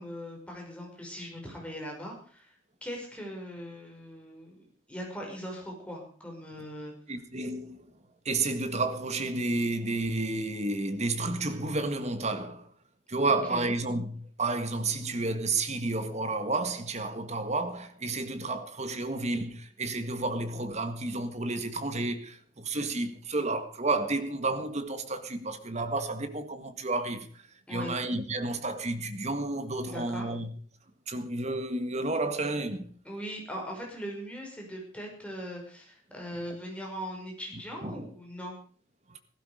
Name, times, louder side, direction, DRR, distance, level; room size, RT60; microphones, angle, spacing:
voice 1, 0.0-2.5 2.8-6.9 13.5-13.7 27.7-27.9 29.8-30.3 33.0-38.5, equal, 5° left, 5.7 m, -40 dB
voice 2, 7.1-7.9 8.2-12.7 13.1-27.3 27.7-30.5 31.1-32.9 37.8-38.1 39.1-39.2, right 2 dB, 35° right, 1.7 m, -31 dB
16.5 x 15.0 x 5.0 m
head